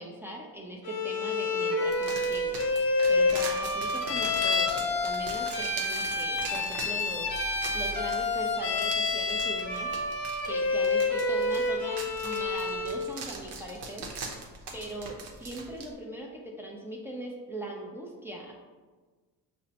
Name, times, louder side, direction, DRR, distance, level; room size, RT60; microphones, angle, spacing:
voice 1, 0.0-2.6 3.1-7.4 7.7-9.9 10.5-14.1 14.7-18.5, right 1 dB, 5° right, -2 dB, 0.5 m, -40 dB
Bowed string instrument, 0.8-13.0, left 3 dB, 50° left, 0.8 m, -28 dB
sound 1, 1.9-15.9, right 3 dB, 65° right, 0.8 m, -42 dB
5.5 x 2.1 x 2.8 m, 1.4 s
supercardioid pair, 85°, 43 cm